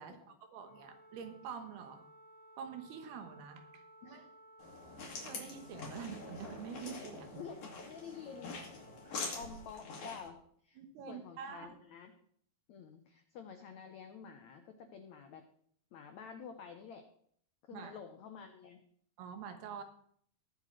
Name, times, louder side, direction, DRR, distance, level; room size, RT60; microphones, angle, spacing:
voice 1, 0.0-2.0 2.6-4.2 4.9-7.4 9.1-9.4 10.8-11.8 17.7-18.0 19.2-19.8, right 7 dB, 85° right, 6 dB, 3.3 m, -47 dB
Wind instrument woodwind instrument, 0.6-9.8, right 1 dB, 10° right, 1.9 m, -60 dB
sound 1, 4.6-10.3, left 3 dB, 50° left, 3.4 m, -45 dB
voice 2, 7.4-8.6 9.4-10.4 10.6-10.8 11.1-12.1 12.7-15.5 15.9-17.1 17.6-18.8, left 6 dB, 85° left, 6 dB, 1.6 m, -49 dB
20.5 x 7.7 x 3.2 m, 0.63 s
omnidirectional pair, 4.5 m